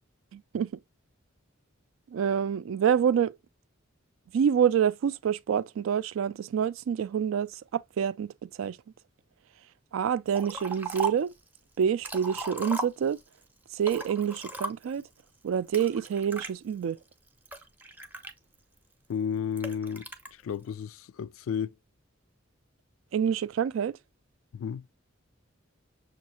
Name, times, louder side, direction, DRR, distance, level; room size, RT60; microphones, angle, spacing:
voice 1, 0.3-0.7 2.1-3.4 4.3-8.3 8.6-8.8 9.9-11.3 11.8-13.2 13.7-15.0 15.4-17.0 23.1-23.9, right 8 dB, 75° right, 0.3 m, -27 dB
Liquid, 10.3-11.3 11.8-13.3 13.8-15.0 15.7-16.5 17.1-18.8 19.6-20.3, right 3 dB, 10° right, 0.5 m, -37 dB
voice 2, 19.1-21.7 24.5-24.9, left 7 dB, 90° left, 0.3 m, -33 dB
6.4 x 2.4 x 2.9 m
head